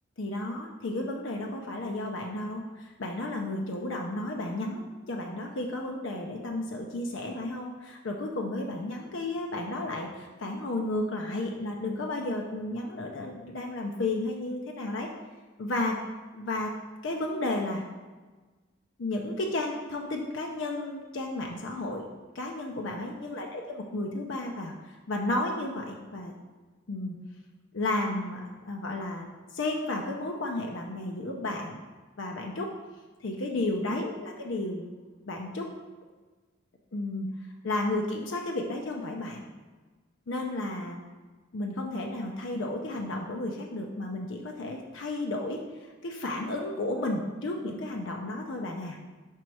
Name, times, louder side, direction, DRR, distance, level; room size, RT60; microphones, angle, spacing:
voice 1, 0.2-15.1 15.6-16.0 16.3-16.7 17.0-17.8 19.0-22.1 22.3-26.3 26.9-27.2 27.7-31.8 32.2-32.7 33.2-34.9 35.3-35.7 36.9-37.3 37.6-39.5 40.3-41.0 41.5-49.0, left 2 dB, 65° left, 1 dB, 0.5 m, -33 dB
5.2 x 4.4 x 4.6 m, 1.3 s
head